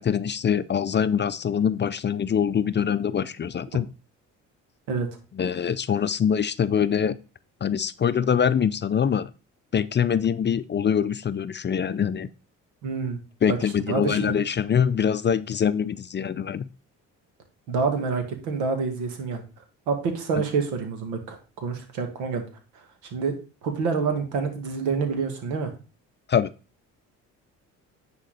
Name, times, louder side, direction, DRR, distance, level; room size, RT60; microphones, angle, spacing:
voice 1, 0.0-3.9 5.4-7.2 7.6-9.3 9.7-12.3 13.4-16.7 26.3-26.5, left 8 dB, 30° left, 15 dB, 0.5 m, -24 dB
voice 2, 12.8-13.2 13.5-13.6 13.9-14.4 17.7-19.4 19.9-22.4 23.1-23.3 23.6-25.7, right 5 dB, 80° right, 5 dB, 1.9 m, -27 dB
9.8 x 4.4 x 4.0 m, 0.33 s
hypercardioid pair, 60°, 37 cm